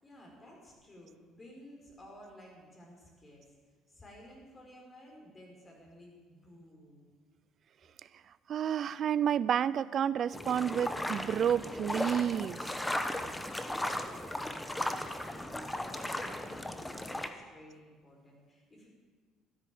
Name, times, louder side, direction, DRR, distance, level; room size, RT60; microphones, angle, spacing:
voice 1, 0.0-3.6 3.9-7.1 13.1-18.9, equal, 25° left, -1 dB, 5.5 m, -54 dB
voice 2, 8.5-12.7, right 9 dB, 55° right, 18 dB, 0.5 m, -30 dB
sound 1, 10.3-17.3, left 1 dB, 10° left, 1.2 m, -36 dB
13.5 x 10.5 x 7.8 m, 1.5 s
supercardioid pair, 85°, 0 cm